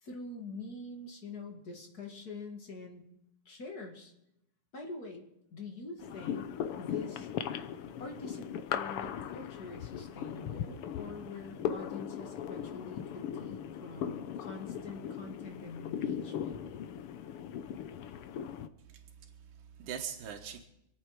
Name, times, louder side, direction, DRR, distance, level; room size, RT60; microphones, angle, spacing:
voice 1, 0.0-3.0 3.5-4.1 4.7-5.3 5.5-7.3 8.0-16.6, left 3 dB, 35° left, 2 dB, 2.0 m, -45 dB
sound 1, 6.0-18.7, left 9 dB, 80° left, 1.3 m, -38 dB
voice 2, 18.8-20.6, right 8 dB, 90° right, 2 dB, 2.8 m, -43 dB
27.0 x 9.1 x 4.8 m, 0.82 s
omnidirectional pair, 3.5 m